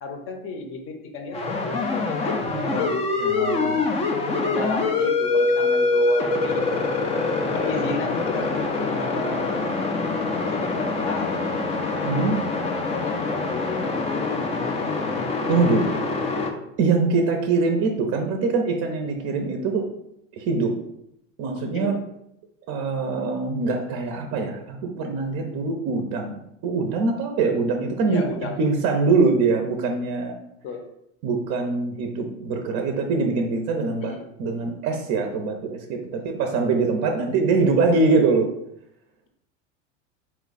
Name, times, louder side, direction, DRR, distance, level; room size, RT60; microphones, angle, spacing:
voice 1, 0.0-2.9 3.3-3.9 4.4-6.6 7.5-9.6 10.4-11.4 11.8-13.9 21.7-22.0 28.0-28.6 30.6-30.8 34.0-34.2 36.1-36.2, left 3 dB, 35° left, 4 dB, 0.7 m, -33 dB
sound 1, 1.3-16.5, left 3 dB, 15° left, 0.3 m, -24 dB
voice 2, 2.5-2.9 3.2-3.8 12.0-12.4 15.5-15.9 16.8-19.8 20.4-20.7 21.4-21.9 22.7-30.3 31.2-34.1 34.4-38.5, right 4 dB, 40° right, 4 dB, 0.6 m, -23 dB
4.3 x 2.3 x 3.9 m, 0.79 s
supercardioid pair, 120°, 39 cm